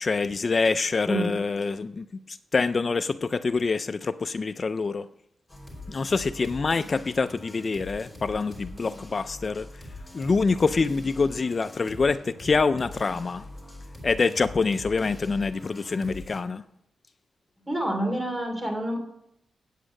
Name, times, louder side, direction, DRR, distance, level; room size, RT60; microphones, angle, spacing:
voice 1, 0.0-5.1 5.9-9.7 10.1-13.4 14.0-16.6, left 4 dB, 40° left, 0.3 m, -26 dB
sound 1, 5.5-16.4, left 1 dB, 5° left, 3.1 m, -43 dB
voice 2, 17.7-19.0, right 1 dB, 20° right, 2.8 m, -27 dB
8.6 x 8.2 x 6.3 m
wide cardioid pair, 115°, 0 cm